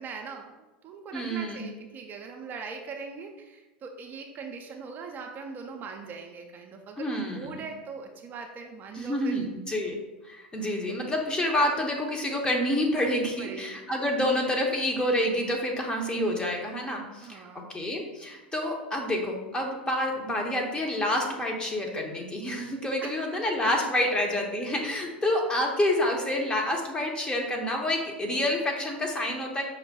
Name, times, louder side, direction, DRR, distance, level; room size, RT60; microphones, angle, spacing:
voice 1, 0.0-9.4 10.6-10.7 12.9-13.8 17.2-17.7 23.0-23.4, right 5 dB, 35° right, 2 dB, 0.5 m, -41 dB
voice 2, 1.1-1.7 7.0-7.6 9.0-9.9 10.3-17.4 17.7-29.6, left 1 dB, 15° left, 1 dB, 0.9 m, -28 dB
5.4 x 2.2 x 4.2 m, 1.1 s
hypercardioid pair, 90°, 5 cm